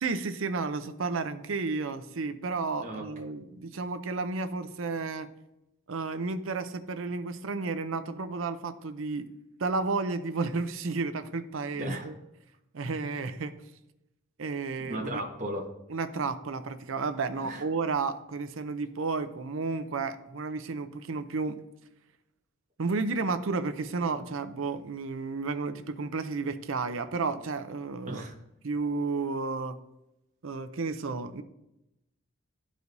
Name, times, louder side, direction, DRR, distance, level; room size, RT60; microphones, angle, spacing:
voice 1, 0.0-5.3 5.9-9.3 9.6-12.1 12.7-13.5 14.4-15.2 15.9-21.6 22.8-28.2 28.6-29.8 30.4-31.4, right 4 dB, 70° right, 11 dB, 0.6 m, -32 dB
voice 2, 11.7-12.1 14.8-15.6 17.4-17.6 28.1-28.3, right 1 dB, 35° right, -1 dB, 1.2 m, -35 dB
12.5 x 4.9 x 2.7 m, 0.87 s
head